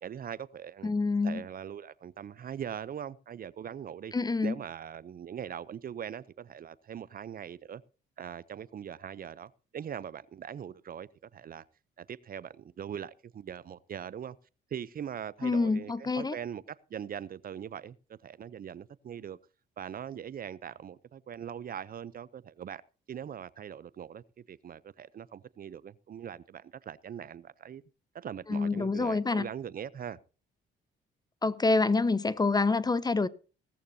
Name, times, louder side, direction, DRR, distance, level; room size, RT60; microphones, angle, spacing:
voice 1, 0.0-0.9 1.2-4.1 4.4-7.8 8.2-11.6 12.0-14.4 14.7-19.4 19.8-22.8 23.1-27.8 28.1-30.2, right 8 dB, 45° right, 0.6 m, -41 dB
voice 2, 0.8-1.4 4.1-4.6 15.4-16.4 28.5-29.5 31.4-33.3, left 3 dB, 20° left, 0.8 m, -27 dB
17.5 x 14.0 x 2.7 m
cardioid pair, 90°, 20 cm